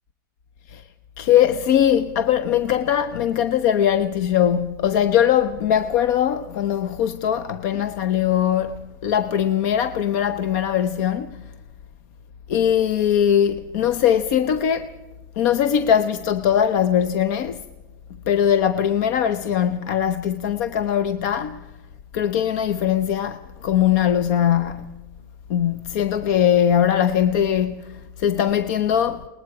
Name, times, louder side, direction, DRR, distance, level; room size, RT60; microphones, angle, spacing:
voice 1, 1.2-11.4 12.5-14.9 15.4-17.6 18.3-21.7 22.1-24.9 25.5-29.3, left 9 dB, 50° left, 0.8 m, -21 dB
28.5 x 20.0 x 4.8 m
supercardioid pair, 140°, 11 cm